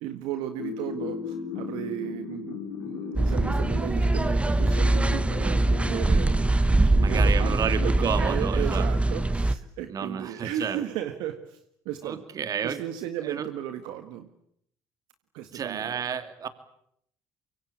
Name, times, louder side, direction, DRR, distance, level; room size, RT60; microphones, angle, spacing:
voice 1, 0.0-6.3 6.7-11.6 11.9-12.2 12.6-14.3 15.3-16.1, right 11 dB, 75° right, 8 dB, 1.8 m, -35 dB
sound 1, 0.6-9.3, left 8 dB, 85° left, 3.9 m, -38 dB
sound 2, 3.2-9.6, right 2 dB, 15° right, 1.2 m, -23 dB
voice 2, 7.0-8.9 9.9-10.8 12.0-12.8 13.2-13.5 15.5-16.5, right 7 dB, 50° right, 11 dB, 2.7 m, -31 dB
25.0 x 23.5 x 8.7 m, 0.72 s
hypercardioid pair, 65°, 8 cm